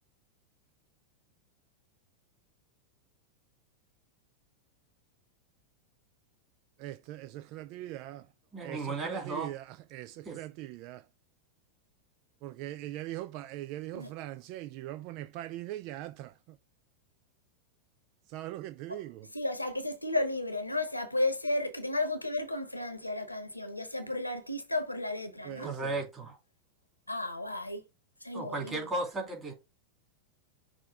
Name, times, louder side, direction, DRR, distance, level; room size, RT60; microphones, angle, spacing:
voice 1, 7.8-8.2 8.6-8.8 9.0-9.6 9.9-11.0 12.4-16.3 18.3-19.1 25.5-25.7, right 15 dB, 45° right, 0.3 m, -40 dB
voice 2, 8.5-9.5 10.2-10.4 25.6-26.4 28.3-29.5, right 2 dB, 20° right, 2.9 m, -35 dB
voice 3, 19.3-25.8 27.1-27.8 28.2-28.9, left 2 dB, 85° left, 1.0 m, -33 dB
6.1 x 3.1 x 4.9 m
figure-of-eight pair, 90°, 0 cm